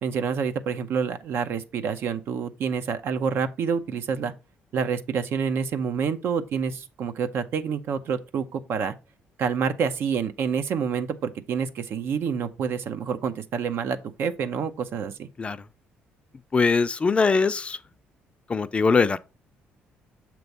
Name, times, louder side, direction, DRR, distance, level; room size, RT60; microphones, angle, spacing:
voice 1, 0.0-4.3 4.7-8.9 9.4-15.3, right 6 dB, 65° right, 0.8 m, -28 dB
voice 2, 16.5-17.8 18.5-19.2, left 4 dB, 30° left, 0.4 m, -22 dB
7.0 x 3.1 x 5.3 m
cardioid pair, 95°, 4 cm